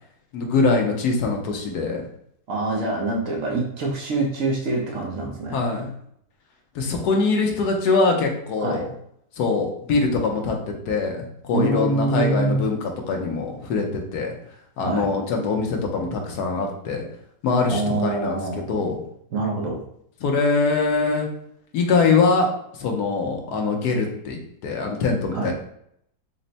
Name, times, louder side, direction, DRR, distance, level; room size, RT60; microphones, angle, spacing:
voice 1, 0.3-2.0 5.5-5.9 6.7-8.9 9.4-14.3 14.8-17.0 17.4-19.0 20.2-21.3 21.7-22.5 22.8-25.5, left 4 dB, 80° left, 2 dB, 1.2 m, -23 dB
voice 2, 2.5-5.6 8.6-8.9 11.5-12.6 14.8-15.1 17.7-18.7 19.3-19.8 25.3-25.5, right 3 dB, 60° right, 0 dB, 1.0 m, -25 dB
4.3 x 2.1 x 3.9 m, 0.71 s
omnidirectional pair, 1.7 m